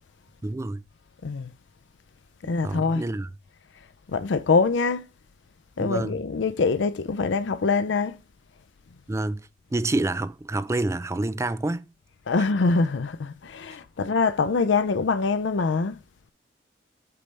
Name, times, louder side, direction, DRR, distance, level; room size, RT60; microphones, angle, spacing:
voice 1, 0.4-0.8 2.4-3.3 5.8-6.2 9.1-11.9 12.4-12.5, right 2 dB, 15° right, 0.3 m, -28 dB
voice 2, 2.4-3.0 4.1-5.1 5.8-8.2 12.3-16.0, left 4 dB, 75° left, 0.5 m, -24 dB
8.4 x 3.3 x 5.3 m
head